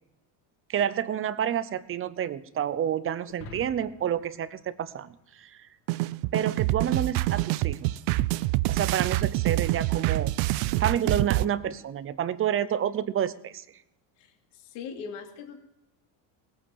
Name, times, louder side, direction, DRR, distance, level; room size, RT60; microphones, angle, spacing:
voice 1, 0.7-5.6 6.3-8.0 8.7-13.6, right 9 dB, 30° right, 15 dB, 0.7 m, -29 dB
sound 1, 3.2-5.8, left 3 dB, 50° left, 4.3 m, -48 dB
sound 2, 5.9-11.4, right 18 dB, 70° right, 0.6 m, -26 dB
voice 2, 14.2-15.6, left 6 dB, 65° left, 3 dB, 2.9 m, -40 dB
18.5 x 8.8 x 7.3 m, 0.90 s
cardioid pair, 135°, 45 cm